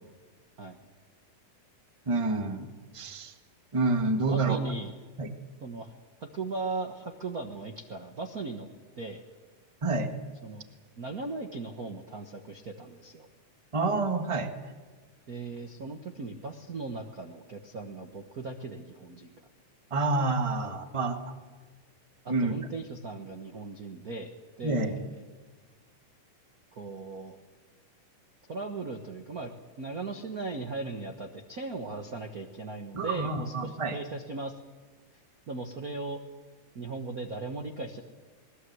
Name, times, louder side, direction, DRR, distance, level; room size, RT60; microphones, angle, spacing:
voice 1, 2.1-2.7 2.9-3.3 3.7-4.6 5.2-5.3 9.8-10.1 13.7-14.5 19.9-21.2 22.3-22.5 24.6-25.0 32.9-34.0, right 3 dB, 45° right, 5 dB, 0.4 m, -28 dB
voice 2, 4.3-4.9 5.6-5.9 6.2-8.7 9.0-9.2 10.4-10.6 11.0-13.3 15.3-19.3 20.6-20.7 22.2-25.2 26.7-27.4 28.5-29.5 29.8-34.5 35.5-36.2 36.7-38.0, right 3 dB, 65° right, 4 dB, 0.9 m, -38 dB
20.5 x 20.5 x 8.0 m, 1.4 s
omnidirectional pair, 3.7 m